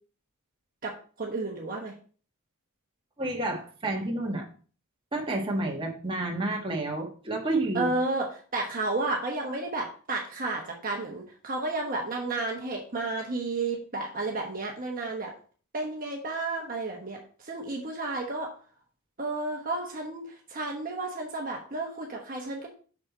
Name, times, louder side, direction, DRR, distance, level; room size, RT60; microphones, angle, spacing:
voice 1, 1.2-1.9 7.7-8.3 8.5-15.3 15.7-18.5 19.2-22.7, right 2 dB, 40° right, 0 dB, 1.2 m, -32 dB
voice 2, 3.2-4.5 5.1-7.9, right 2 dB, 25° right, -1 dB, 1.5 m, -30 dB
6.4 x 5.9 x 4.2 m, 0.40 s
head